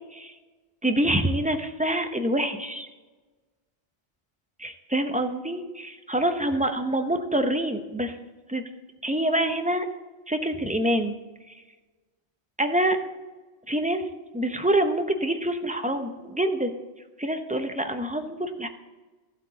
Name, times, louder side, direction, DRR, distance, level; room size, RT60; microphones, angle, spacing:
voice 1, 0.8-2.9 4.6-8.2 8.5-8.6 9.0-9.9 10.3-11.2 12.6-13.0 13.7-14.0 14.3-16.7 17.2-18.7, right 1 dB, 10° right, 6 dB, 0.7 m, -26 dB
14.0 x 8.0 x 4.0 m, 1.3 s
omnidirectional pair, 1.1 m